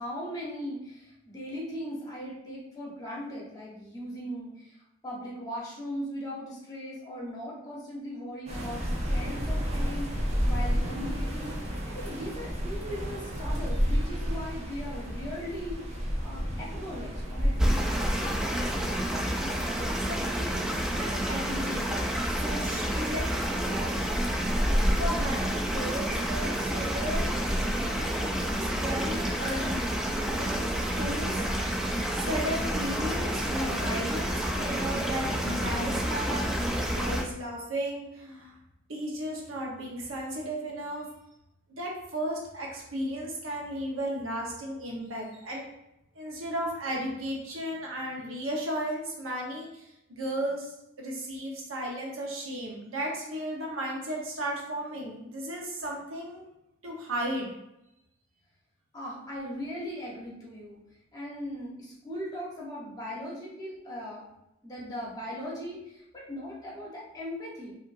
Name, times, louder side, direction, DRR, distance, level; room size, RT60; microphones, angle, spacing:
voice 1, 0.0-17.9 58.9-60.8 61.1-64.2 64.6-67.8, equal, 20° left, -5 dB, 1.1 m, -39 dB
sound 1, 8.5-19.1, equal, 35° right, 0.7 m, -30 dB
sound 2, 17.6-37.2, equal, 5° right, 0.4 m, -29 dB
voice 2, 19.9-20.5 20.9-21.8 22.3-23.2 23.5-24.0 25.0-27.3 27.8-29.9 30.2-31.5 32.1-38.6 38.9-41.1 41.8-45.7 46.1-56.4 56.8-57.5, right 1 dB, 85° right, -2 dB, 1.1 m, -35 dB
5.4 x 2.7 x 2.6 m, 0.87 s
head